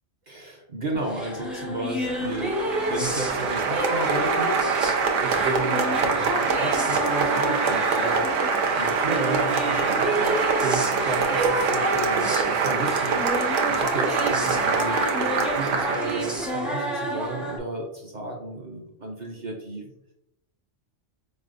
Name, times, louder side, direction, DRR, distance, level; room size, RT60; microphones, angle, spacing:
voice 1, 0.3-19.9, right 2 dB, 50° right, 0 dB, 0.6 m, -33 dB
sound 1, 0.9-17.6, right 1 dB, ahead, 0.4 m, -30 dB
Applause, 2.0-16.5, right 5 dB, 80° right, 1.0 m, -24 dB
4.4 x 3.3 x 2.4 m, 0.84 s
omnidirectional pair, 1.3 m